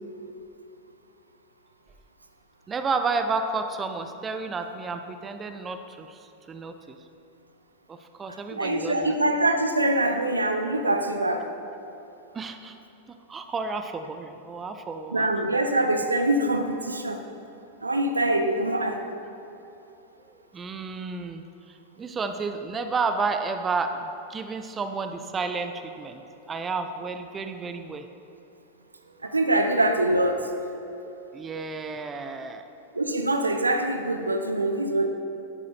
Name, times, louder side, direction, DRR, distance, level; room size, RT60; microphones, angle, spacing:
voice 1, 2.7-7.0 7.9-9.1 12.3-12.8 13.3-15.3 20.5-21.4 22.0-26.2 26.5-28.1 29.2-29.3 31.0-32.6, right 4 dB, 20° right, 7 dB, 0.6 m, -31 dB
voice 2, 8.3-11.5 15.1-17.2 17.8-19.0 29.2-30.5 32.9-35.1, right 1 dB, 80° right, 6 dB, 0.7 m, -24 dB
10.5 x 8.5 x 5.1 m, 2.9 s
figure-of-eight pair, 90°, 0 cm